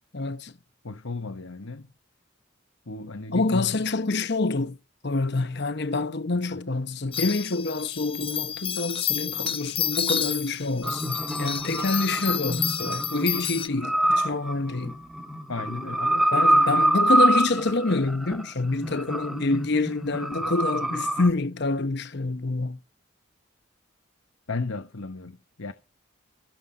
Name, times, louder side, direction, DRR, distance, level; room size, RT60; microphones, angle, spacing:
voice 1, 0.1-0.5 3.3-4.8 5.0-15.0 16.3-22.8, left 3 dB, 55° left, 1.0 m, -27 dB
voice 2, 0.8-1.9 2.9-3.8 15.5-16.8 24.5-25.7, left 3 dB, 75° left, 1.1 m, -34 dB
sound 1, 7.1-13.7, left 8 dB, 25° left, 0.8 m, -30 dB
sound 2, 10.8-21.3, right 1 dB, ahead, 1.4 m, -26 dB
15.5 x 7.6 x 5.5 m
head